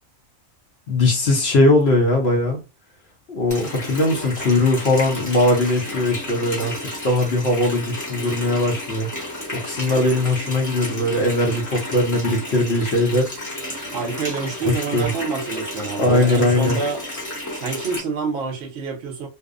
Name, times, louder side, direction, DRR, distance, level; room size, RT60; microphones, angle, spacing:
voice 1, 0.9-2.6 3.3-9.1 9.5-13.3 14.6-15.1 16.0-16.8, left 2 dB, 55° left, 0.9 m, -20 dB
Water tap faucet, 3.5-18.0, left 1 dB, 15° left, 0.7 m, -32 dB
voice 2, 13.9-17.0 17.5-19.3, right 4 dB, 60° right, 0.9 m, -27 dB
2.6 x 2.0 x 2.4 m
omnidirectional pair, 1.4 m